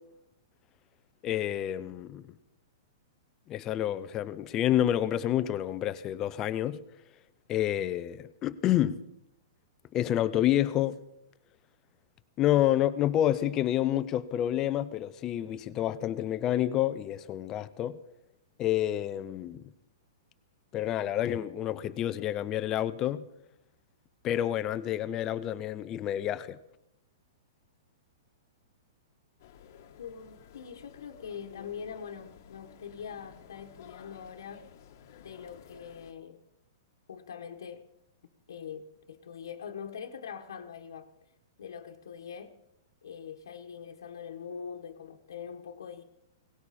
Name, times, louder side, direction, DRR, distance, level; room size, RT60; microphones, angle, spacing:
voice 1, 1.2-2.3 3.5-6.8 7.5-9.0 9.9-11.0 12.4-18.0 18.6-19.7 20.7-23.2 24.2-26.6, left 12 dB, 20° left, 0.5 m, -28 dB
sound 1, 29.4-36.1, left 8 dB, 45° left, 1.3 m, -53 dB
voice 2, 30.0-34.7 35.2-36.4 37.1-37.8 38.5-41.1 41.6-42.5 43.0-46.0, left 7 dB, 85° left, 1.3 m, -43 dB
18.0 x 17.0 x 4.3 m
hypercardioid pair, 165°, 2 cm